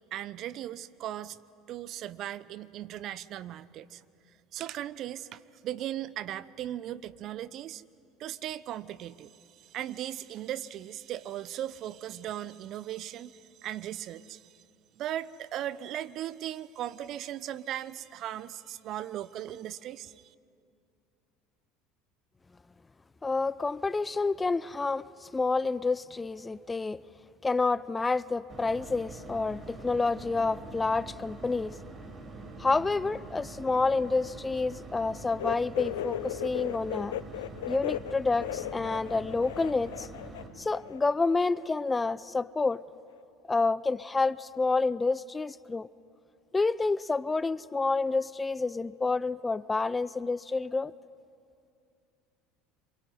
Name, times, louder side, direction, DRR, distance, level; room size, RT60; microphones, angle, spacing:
voice 1, 0.1-1.4 1.7-4.0 4.5-7.8 8.2-9.3 9.6-14.4 15.0-20.1, right 12 dB, 50° right, 0.8 m, -38 dB
voice 2, 23.2-27.0 27.4-31.8 32.6-37.2 37.7-40.1 40.6-42.8 43.5-45.9 46.5-50.9, left 3 dB, 20° left, 0.6 m, -29 dB
sound 1, 28.5-40.5, right 3 dB, 30° right, 5.1 m, -45 dB
sound 2, 35.4-40.4 40.7-41.7 42.0-42.1 43.1-43.2, left 12 dB, 75° left, 0.7 m, -36 dB
26.5 x 23.5 x 9.6 m
hypercardioid pair, 70°, 0 cm